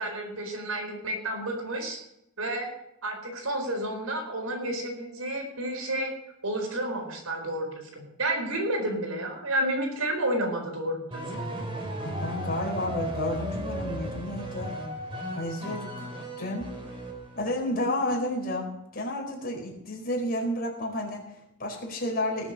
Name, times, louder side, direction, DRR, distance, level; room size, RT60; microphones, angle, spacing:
voice 1, 0.0-2.0 2.4-2.7 3.0-6.1 6.4-11.5, right 1 dB, 85° right, 2 dB, 4.6 m, -31 dB
sound 1, 11.1-17.6, right 1 dB, 25° right, 2.9 m, -35 dB
voice 2, 12.0-14.7 15.3-16.1 16.4-16.7 17.3-18.7 18.9-22.5, left 1 dB, 45° left, 0 dB, 4.5 m, -31 dB
19.0 x 7.6 x 6.4 m, 0.82 s
head